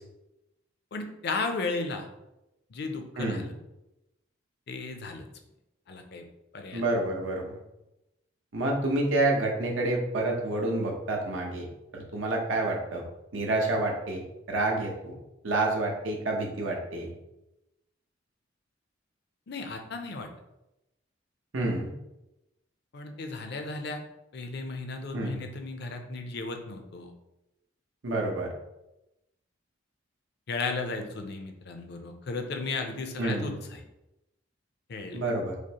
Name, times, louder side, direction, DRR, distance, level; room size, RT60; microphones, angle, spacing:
voice 1, 0.9-2.1 2.7-3.5 4.7-5.2 5.9-6.3 6.5-7.0 19.5-20.3 22.9-24.0 24.3-27.1 30.5-33.8 34.9-35.2, left 3 dB, 55° left, 5 dB, 0.5 m, -35 dB
voice 2, 3.2-3.5 6.7-7.6 8.5-11.7 11.9-13.0 13.3-15.1 15.4-17.1 21.5-21.9 25.1-25.4 28.0-28.5 33.2-33.5 35.1-35.6, right 2 dB, 85° right, 0 dB, 0.9 m, -28 dB
5.0 x 2.0 x 2.9 m, 0.91 s
head